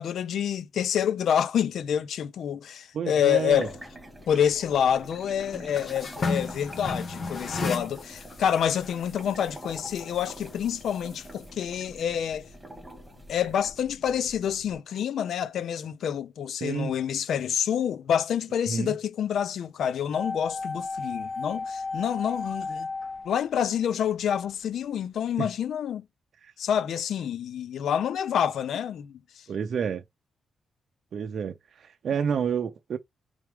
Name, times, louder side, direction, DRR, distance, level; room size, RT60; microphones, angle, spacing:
voice 1, 0.0-3.7 4.3-12.5 13.3-22.9 23.2-26.0 26.6-29.1, left 9 dB, 75° left, 0.5 m, -27 dB
voice 2, 2.9-3.7 16.6-16.9 18.7-19.0 25.4-25.5 26.4-26.5 29.5-30.0 31.1-33.0, right 7 dB, 60° right, 0.5 m, -29 dB
sound 1, 3.1-13.7, right 1 dB, 10° right, 2.0 m, -46 dB
sound 2, 3.7-14.7, left 3 dB, 45° left, 1.7 m, -38 dB
sound 3, 20.1-24.2 24.5-24.6, left 3 dB, 25° left, 2.0 m, -34 dB
4.5 x 3.5 x 3.3 m
cardioid pair, 130°, 0 cm